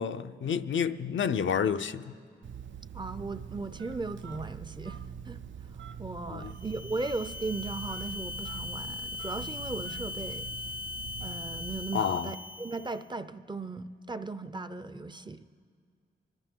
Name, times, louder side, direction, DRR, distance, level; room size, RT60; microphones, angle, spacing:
voice 1, 0.0-2.1 6.3-6.5 11.9-12.3, left 7 dB, 75° left, 0.5 m, -29 dB
Telephone, 2.4-12.1, right 7 dB, 75° right, 0.5 m, -44 dB
voice 2, 2.9-5.4 6.0-10.5 11.2-15.5, right 3 dB, 25° right, 0.5 m, -37 dB
sound 1, 6.5-13.1, left 2 dB, 50° right, 1.0 m, -40 dB
24.5 x 11.5 x 4.5 m
wide cardioid pair, 85°, 20 cm